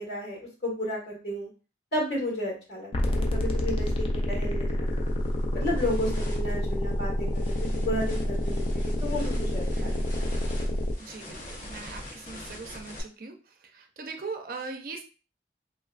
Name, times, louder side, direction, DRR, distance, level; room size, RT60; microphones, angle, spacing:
voice 1, 0.0-1.5 1.9-5.1 5.5-10.3, left 1 dB, 65° left, -3 dB, 1.6 m, -33 dB
sound 1, 2.9-10.9, equal, 30° left, 0.3 m, -28 dB
sound 2, 4.2-4.3 4.8-13.0, left 1 dB, 45° left, 0.7 m, -44 dB
voice 2, 5.8-6.1 9.7-10.1 11.0-15.0, right 4 dB, 55° right, 5 dB, 0.4 m, -41 dB
3.1 x 2.2 x 2.4 m, 0.34 s
head